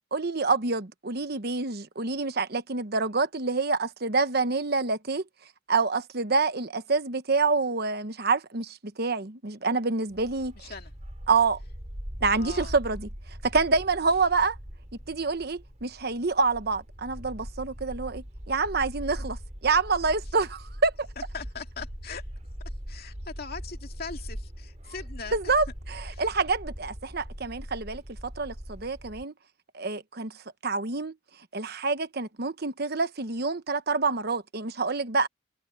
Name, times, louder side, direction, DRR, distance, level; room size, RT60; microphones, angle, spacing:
voice 1, 0.1-5.2 5.7-10.7 11.3-11.6 12.2-13.1 13.4-14.6 15.1-19.4 19.6-21.1 25.3-29.3 29.7-30.3 30.6-31.1 31.5-35.3, right 4 dB, 55° right, 1.2 m, -27 dB
Bark, 10.1-29.2, equal, 40° right, 4.7 m, -41 dB
voice 2, 10.6-10.9 12.4-12.8 21.2-22.3 22.9-25.5 26.1-26.3, left 5 dB, 55° left, 2.4 m, -40 dB
head